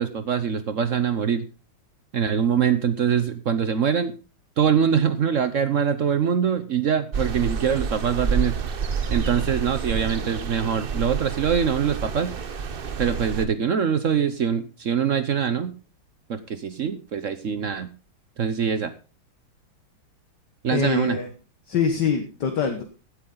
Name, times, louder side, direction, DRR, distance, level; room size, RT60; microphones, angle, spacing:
voice 1, 0.0-1.5 2.1-4.2 4.6-8.6 9.1-12.3 13.0-15.7 16.3-17.9 18.4-18.9 20.6-21.2, right 7 dB, 55° right, 12 dB, 0.8 m, -23 dB
sound 1, 7.1-13.5, right 5 dB, 80° right, 0.5 m, -28 dB
voice 2, 20.7-21.3 21.7-22.8, left 6 dB, 55° left, 5 dB, 1.9 m, -24 dB
15.5 x 9.7 x 3.9 m, 0.34 s
omnidirectional pair, 2.3 m